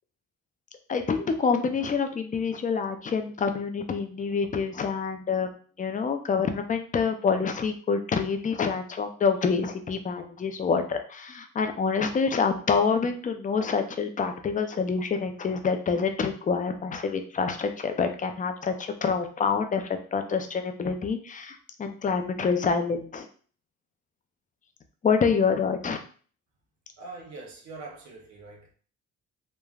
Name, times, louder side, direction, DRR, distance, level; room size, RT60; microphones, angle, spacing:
voice 1, 0.9-5.5 5.8-23.3 25.0-26.0, left 5 dB, 25° left, 6 dB, 0.4 m, -27 dB
voice 2, 27.0-28.7, right 3 dB, 65° right, 0 dB, 0.9 m, -43 dB
3.2 x 2.1 x 2.3 m, 0.43 s
cardioid pair, 90°, 30 cm